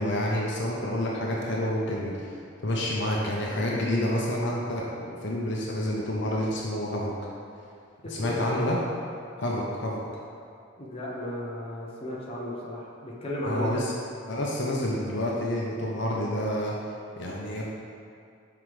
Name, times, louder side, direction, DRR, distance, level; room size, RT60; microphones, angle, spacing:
voice 1, 0.0-2.4 2.6-7.2 8.1-8.8 9.4-10.0 13.4-13.9 14.3-16.7 17.2-17.6, left 1 dB, 60° left, -3 dB, 0.8 m, -28 dB
voice 2, 8.0-8.4 10.8-13.8, left 1 dB, 30° left, -5 dB, 1.0 m, -34 dB
5.9 x 4.6 x 4.9 m, 2.4 s
head